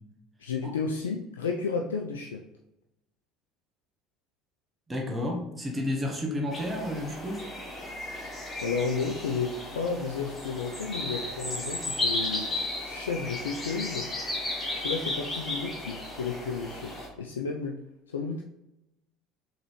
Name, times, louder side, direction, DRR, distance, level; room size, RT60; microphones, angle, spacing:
voice 1, 0.4-2.4 8.6-12.5 12.8-14.1 14.8-17.8 18.1-18.4, left 5 dB, 90° left, 1 dB, 0.3 m, -32 dB
voice 2, 4.9-7.5, left 1 dB, 20° right, 0 dB, 1.0 m, -31 dB
sound 1, 6.5-17.1, left 2 dB, 30° left, 1.4 m, -34 dB
3.9 x 3.2 x 3.1 m, 0.91 s
hypercardioid pair, 70°, 0 cm